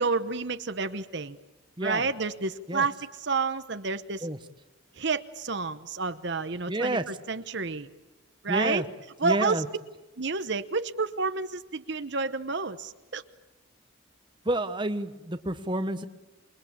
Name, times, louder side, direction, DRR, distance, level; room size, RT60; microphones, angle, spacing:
voice 1, 0.0-1.4 1.8-4.3 5.0-7.9 8.4-8.8 9.2-9.6 10.2-13.2, right 4 dB, 55° right, 11 dB, 1.0 m, -30 dB
voice 2, 6.7-7.0 8.5-8.8 9.2-9.7 14.4-16.1, right 1 dB, 20° right, 9 dB, 1.1 m, -29 dB
28.0 x 22.0 x 8.7 m, 1.1 s
head